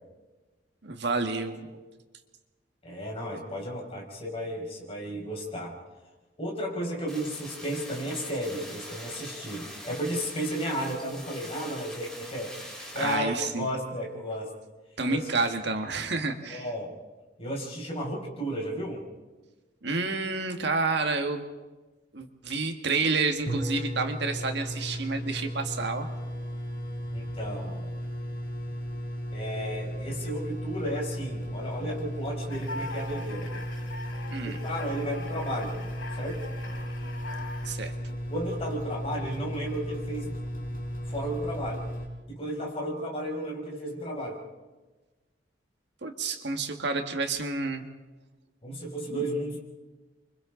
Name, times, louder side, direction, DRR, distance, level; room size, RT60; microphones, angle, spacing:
voice 1, 0.8-1.7 13.0-13.7 15.0-16.7 19.8-21.4 22.1-26.1 34.3-34.6 37.7-37.9 46.0-47.8 49.1-49.2, right 3 dB, 65° right, 5 dB, 1.9 m, -29 dB
voice 2, 2.8-5.7 6.4-14.5 15.1-15.5 16.5-16.9 17.4-19.0 27.1-27.9 29.3-33.5 34.4-35.8 36.1-36.4 38.3-40.4 41.1-41.8 42.3-44.4 48.6-49.6, equal, 30° left, -2 dB, 5.5 m, -33 dB
sound 1, 7.1-13.1, equal, 5° left, 7.1 m, -43 dB
sound 2, 23.2-23.3 23.5-42.1, equal, 50° left, 5.1 m, -35 dB
sound 3, 32.5-37.7, left 3 dB, 85° left, 6.6 m, -42 dB
29.0 x 24.5 x 3.9 m, 1.2 s
head